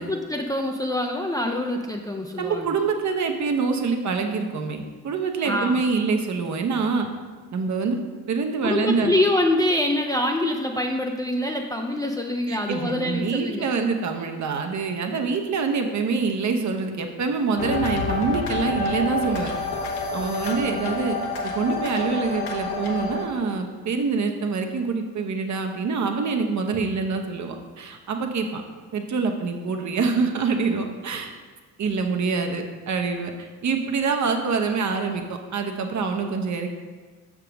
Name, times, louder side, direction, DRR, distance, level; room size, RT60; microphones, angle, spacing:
voice 1, 0.0-2.7 5.4-5.8 8.6-13.7, left 1 dB, 10° left, 2 dB, 0.6 m, -25 dB
voice 2, 2.4-7.1 7.5-8.0 8.3-9.2 12.5-19.5 20.1-21.2 21.4-28.6 28.9-31.3 31.8-36.7, right 4 dB, 40° right, 5 dB, 0.9 m, -25 dB
sound 1, 17.6-23.2, left 3 dB, 60° left, 1.1 m, -28 dB
6.6 x 3.7 x 6.1 m, 1.4 s
figure-of-eight pair, 45°, 44 cm